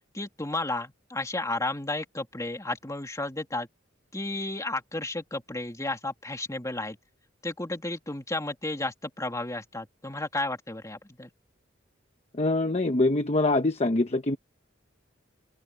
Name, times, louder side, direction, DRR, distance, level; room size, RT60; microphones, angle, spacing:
voice 1, 0.1-3.7 4.1-7.0 7.4-11.3, left 2 dB, 15° left, 2.7 m, -33 dB
voice 2, 12.4-14.4, left 2 dB, 35° left, 1.0 m, -24 dB
open air
head